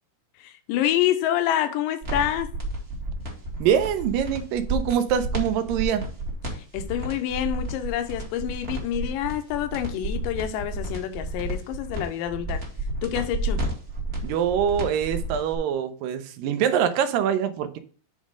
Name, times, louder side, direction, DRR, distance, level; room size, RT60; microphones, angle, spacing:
voice 1, 0.4-2.5 6.5-12.6 13.0-13.6, left 11 dB, 75° left, 2.4 m, -27 dB
sound 1, 2.0-15.6, right 1 dB, 30° right, 1.2 m, -31 dB
voice 2, 3.6-6.0 14.2-17.8, right 9 dB, 80° right, 2.2 m, -24 dB
7.3 x 3.6 x 6.0 m
omnidirectional pair, 4.2 m